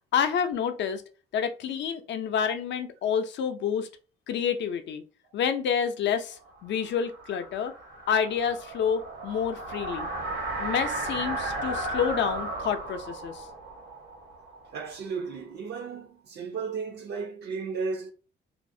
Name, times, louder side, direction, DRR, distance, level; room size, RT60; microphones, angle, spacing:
voice 1, 0.1-1.0 1.3-3.9 4.3-5.0 5.3-7.7 8.1-10.1 10.6-13.5, left 7 dB, 65° left, 0.5 m, -28 dB
sound 1, 6.5-15.3, right 2 dB, 85° right, 1.0 m, -35 dB
voice 2, 14.7-18.1, right 5 dB, 55° right, 0.4 m, -34 dB
2.5 x 2.0 x 2.5 m
cardioid pair, 90°, 20 cm